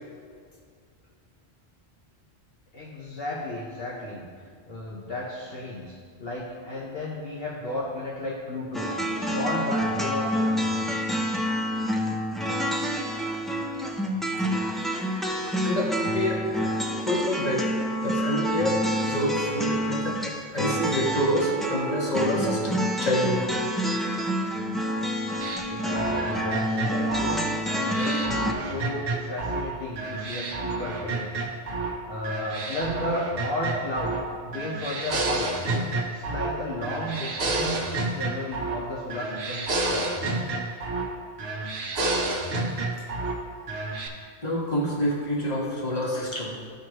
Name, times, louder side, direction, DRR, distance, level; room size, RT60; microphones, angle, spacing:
voice 1, 2.7-4.3 4.6-10.7 25.7-31.3 32.0-40.1, left 1 dB, 60° left, -6 dB, 1.3 m, -34 dB
sound 1, 8.7-28.5, equal, ahead, 0.4 m, -28 dB
voice 2, 15.6-16.5 17.0-17.7 18.0-23.4 44.4-46.6, equal, 40° left, -4 dB, 1.6 m, -27 dB
sound 2, 25.4-29.7 30.0-31.9 32.2-34.3 34.5-36.6 36.8-38.8 39.1-41.1 41.4-43.4 43.7-44.1, right 2 dB, 65° right, 1.1 m, -30 dB
14.0 x 4.8 x 3.0 m, 2.1 s
omnidirectional pair, 1.1 m